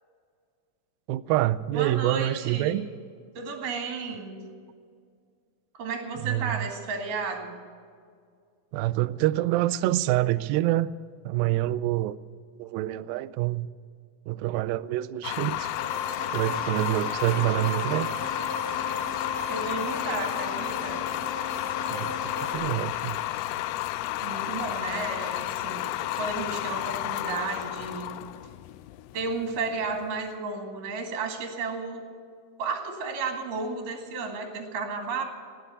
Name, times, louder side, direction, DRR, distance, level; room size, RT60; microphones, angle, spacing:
voice 1, 1.1-2.8 6.2-6.6 8.7-10.9 11.3-12.2 12.6-13.7 14.3-15.7 16.3-18.1 21.9-23.4, right 15 dB, 80° right, 12 dB, 2.1 m, -26 dB
voice 2, 1.7-2.8 3.3-4.4 5.7-7.6 19.5-21.0 24.2-25.9 26.2-28.2 29.1-32.1 32.6-35.2, right 4 dB, 60° right, 3 dB, 3.4 m, -33 dB
sound 1, 15.2-30.2, left 15 dB, 85° left, 2.5 m, -32 dB
sound 2, 15.7-22.5, left 2 dB, 30° left, 2.8 m, -35 dB
19.0 x 7.9 x 8.1 m, 2.1 s
omnidirectional pair, 4.5 m